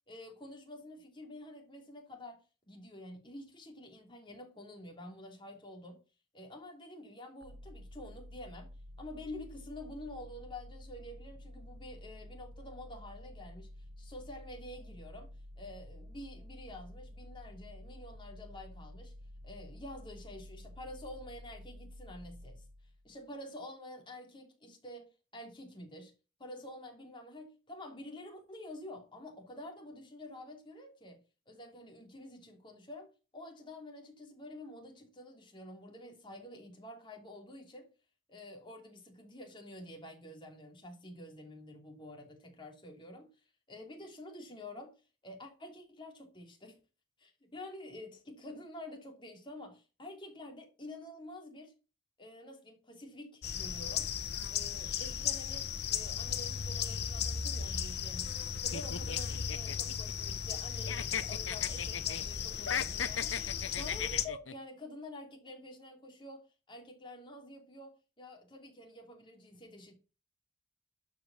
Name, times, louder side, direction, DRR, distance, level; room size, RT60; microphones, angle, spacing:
voice 1, 0.1-6.0 6.3-8.7 9.0-13.7 14.0-19.2 19.4-22.6 23.0-26.1 26.4-37.9 38.3-43.3 43.7-44.9 45.2-46.8 47.2-51.7 52.2-54.1 54.5-63.4 63.7-69.9, left 1 dB, 25° left, 2.9 m, -48 dB
sound 1, 7.4-23.2, left 1 dB, 55° right, 1.1 m, -50 dB
sound 2, 53.4-64.3, left 8 dB, 55° left, 0.9 m, -36 dB
sound 3, 58.7-60.6 60.9-62.3 62.6-64.5, left 7 dB, 80° left, 0.8 m, -37 dB
12.0 x 5.2 x 7.1 m
head